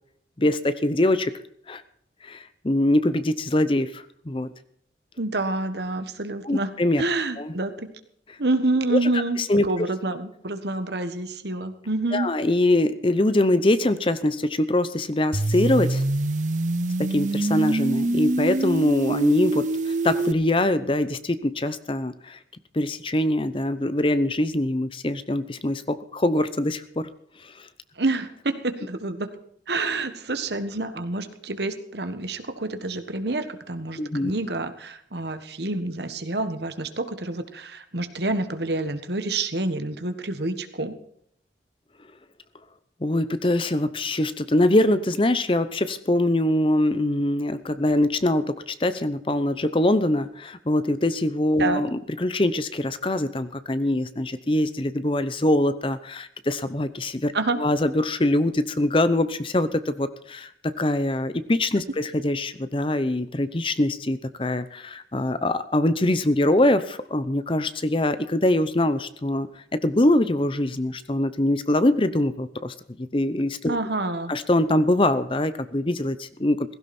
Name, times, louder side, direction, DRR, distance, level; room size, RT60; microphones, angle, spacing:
voice 1, 0.4-1.3 1.7-1.8 2.2-4.5 6.4-7.0 7.4-7.5 9.4-9.7 12.1-16.0 17.0-22.4 22.7-27.1 27.4-27.7 34.0-34.3 43.0-69.5 69.7-73.8 74.3-76.7, left 1 dB, 30° left, 13 dB, 0.8 m, -23 dB
voice 2, 5.2-6.7 7.0-7.9 8.4-12.3 28.0-29.3 29.7-41.0 51.6-51.8 57.3-57.6 73.7-74.3, right 2 dB, 65° right, 9 dB, 1.5 m, -28 dB
sound 1, 15.3-20.3, right 2 dB, 40° right, 0.6 m, -25 dB
16.5 x 16.0 x 4.4 m, 0.69 s
head